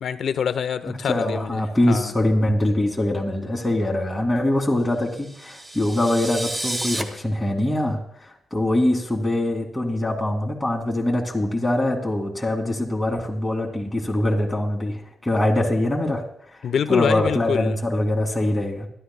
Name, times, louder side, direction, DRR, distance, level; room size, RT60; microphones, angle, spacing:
voice 1, 0.0-1.6 1.9-2.1 16.6-17.8, left 7 dB, 70° left, 12 dB, 0.7 m, -25 dB
voice 2, 1.1-16.2 16.9-18.9, left 1 dB, 5° left, -2 dB, 2.4 m, -23 dB
sound 1, 5.1-7.0, right 1 dB, 15° right, 1.1 m, -31 dB
23.0 x 12.5 x 2.3 m, 0.69 s
wide cardioid pair, 135°, 0 cm